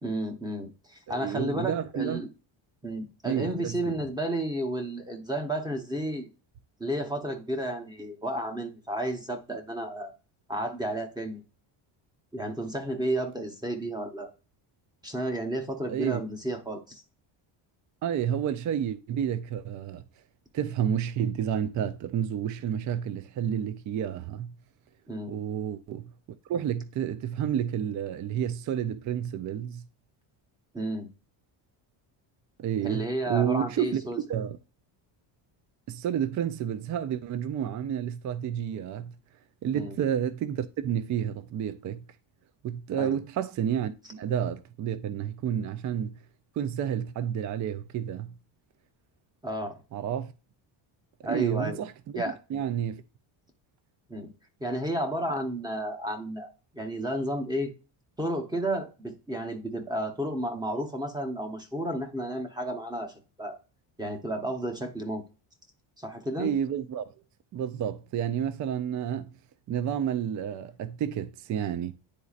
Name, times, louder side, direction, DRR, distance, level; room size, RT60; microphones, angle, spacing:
voice 1, 0.0-2.3 2.8-6.3 6.8-10.1 10.5-11.4 12.3-14.3 15.0-17.0 25.1-25.4 30.7-31.1 32.8-34.2 39.7-40.0 42.9-43.2 49.4-49.8 51.2-51.8 52.1-52.3 54.1-54.3 54.6-57.7 58.2-63.6 64.0-65.2 66.0-66.6, right 1 dB, 10° right, 0.8 m, -32 dB
voice 2, 1.1-2.2 3.2-3.8 15.9-16.2 18.0-20.0 20.5-24.5 25.3-26.1 26.5-29.8 32.6-34.0 34.3-34.6 35.9-39.1 39.6-42.0 42.6-46.2 46.6-48.3 49.9-50.3 51.3-53.0 66.4-67.0 67.5-69.3 69.7-71.9, right 9 dB, 40° right, 0.4 m, -30 dB
10.0 x 4.1 x 2.4 m
cardioid pair, 170°, 49 cm